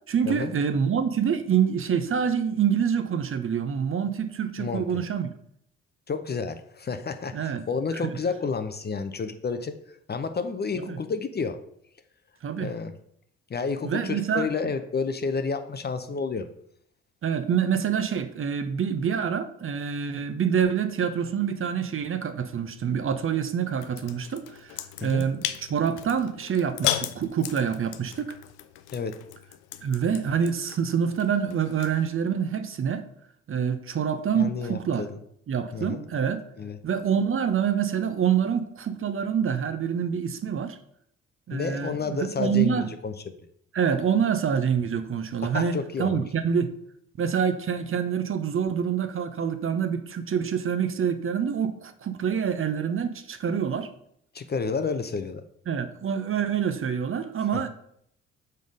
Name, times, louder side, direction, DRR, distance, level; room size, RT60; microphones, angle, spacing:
voice 1, 0.1-5.3 7.3-7.6 8.0-8.2 10.8-11.0 12.4-12.7 13.8-14.7 17.2-28.4 29.8-33.0 33.5-35.1 35.5-36.4 36.8-40.8 41.5-42.9 43.7-46.7 47.2-53.9 55.7-57.7, right 7 dB, 40° right, 10 dB, 0.7 m, -26 dB
voice 2, 4.6-5.0 6.1-9.7 10.1-11.6 12.6-12.9 13.5-16.5 25.0-25.3 28.9-29.2 34.4-35.2 35.7-36.0 36.6-36.8 41.5-43.3 45.4-46.2 54.3-55.4 57.5-57.7, left 5 dB, 30° left, 9 dB, 0.6 m, -30 dB
sound 1, 23.8-32.1, left 12 dB, 80° left, 0.5 m, -36 dB
5.3 x 3.9 x 5.1 m, 0.69 s
hypercardioid pair, 50°, 34 cm